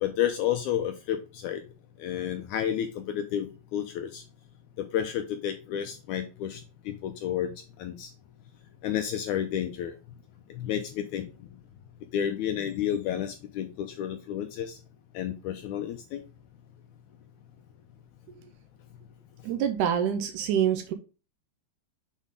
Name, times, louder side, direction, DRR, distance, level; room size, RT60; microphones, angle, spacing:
voice 1, 0.0-1.6 2.0-4.2 4.8-6.6 6.9-7.5 7.8-8.1 8.8-9.9 10.5-11.3 12.1-14.8 15.1-16.2, left 10 dB, 80° left, 7 dB, 1.8 m, -31 dB
voice 2, 19.4-20.9, right 9 dB, 75° right, 6 dB, 1.9 m, -26 dB
7.3 x 4.1 x 3.6 m, 0.33 s
omnidirectional pair, 4.0 m